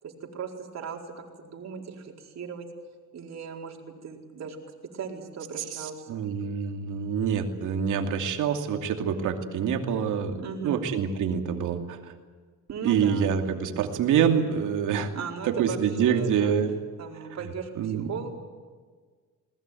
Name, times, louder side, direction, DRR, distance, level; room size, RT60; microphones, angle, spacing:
voice 1, 0.0-2.7 3.1-4.6 4.9-6.1 10.4-10.9 12.7-13.3 15.1-16.5 17.0-18.3, right 6 dB, 60° right, 1 dB, 4.6 m, -37 dB
voice 2, 5.8-12.1 12.8-15.1 15.4-16.7 17.8-18.1, right 7 dB, 85° right, 4 dB, 2.8 m, -26 dB
21.0 x 20.0 x 9.3 m, 1.5 s
cardioid pair, 90°, 30 cm